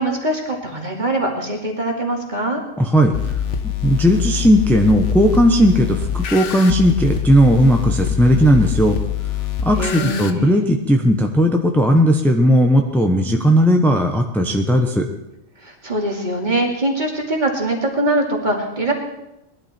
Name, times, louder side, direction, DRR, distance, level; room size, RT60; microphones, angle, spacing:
voice 1, 0.0-2.6 9.8-10.6 15.6-18.9, right 1 dB, 40° right, 0 dB, 2.6 m, -22 dB
voice 2, 2.8-9.0 9.6-15.1, equal, ahead, 3 dB, 1.0 m, -16 dB
sound 1, 3.1-10.3, left 9 dB, 85° left, 1.4 m, -24 dB
19.5 x 12.0 x 4.4 m, 0.90 s
omnidirectional pair, 1.2 m